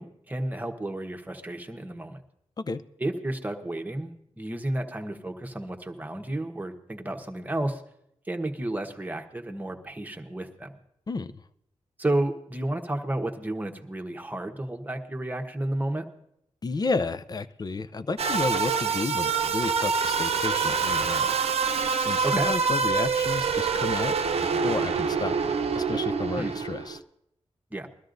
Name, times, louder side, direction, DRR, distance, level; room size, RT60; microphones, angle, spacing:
voice 1, 0.0-2.2 3.0-7.8 8.2-10.7 12.0-16.1 22.2-22.5 26.4-26.6 27.7-27.9, right 1 dB, 15° right, 4 dB, 1.2 m, -32 dB
voice 2, 16.6-21.4 22.0-25.4 25.7-27.0, left 3 dB, 35° left, 12 dB, 0.5 m, -31 dB
sound 1, 18.2-27.0, right 5 dB, 70° right, 0.7 m, -26 dB
21.5 x 13.0 x 2.6 m, 0.76 s
wide cardioid pair, 85°, 11 cm